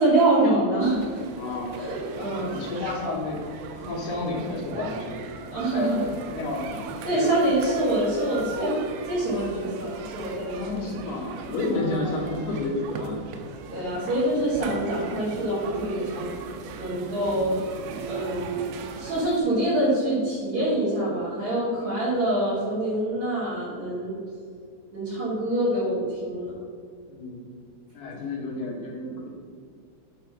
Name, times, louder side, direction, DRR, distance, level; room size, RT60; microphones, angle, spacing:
voice 1, 0.0-1.2 1.8-2.6 5.5-6.0 7.0-8.8 9.1-10.9 11.7-12.5 13.7-16.3 16.8-17.6 18.0-18.6 18.9-24.1 24.9-26.5, right 1 dB, 50° right, -10 dB, 3.0 m, -25 dB
sound 1, 0.8-19.4, right 5 dB, 85° right, 2.8 m, -39 dB
voice 2, 1.3-1.7 2.2-3.4 3.8-5.3 5.7-7.5 10.5-13.3 27.1-27.5 27.9-29.3, left 2 dB, 70° left, -2 dB, 2.4 m, -31 dB
9.2 x 3.4 x 5.8 m, 2.2 s
omnidirectional pair, 4.8 m